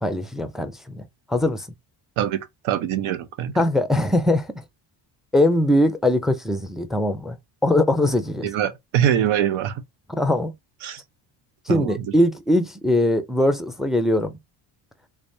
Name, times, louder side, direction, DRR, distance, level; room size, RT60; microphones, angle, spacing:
voice 1, 0.0-1.7 3.6-4.5 5.3-7.4 7.6-8.5 10.2-10.5 11.7-14.4, left 1 dB, ahead, 0.4 m, -21 dB
voice 2, 2.2-3.5 8.4-9.8 10.8-11.0 11.7-12.1, right 10 dB, 75° right, 0.9 m, -24 dB
3.5 x 3.3 x 2.7 m
cardioid pair, 115°, 48 cm